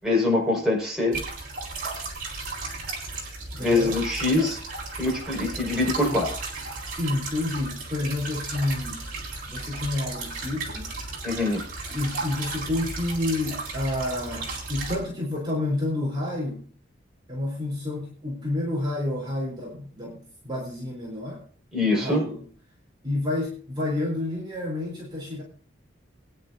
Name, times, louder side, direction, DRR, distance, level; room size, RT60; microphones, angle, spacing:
voice 1, 0.0-1.2 3.6-4.6 5.0-6.3 11.2-11.6 21.7-22.3, left 2 dB, 5° right, -4 dB, 5.0 m, -23 dB
sound 1, 1.1-15.0, right 3 dB, 45° right, 4.2 m, -35 dB
voice 2, 3.5-4.0 4.4-4.5 6.1-6.2 6.8-9.1 9.4-11.0 11.9-16.7 17.3-21.4 21.8-22.5 23.0-25.4, left 2 dB, 25° right, -4 dB, 3.5 m, -29 dB
23.0 x 10.0 x 2.6 m, 0.43 s
head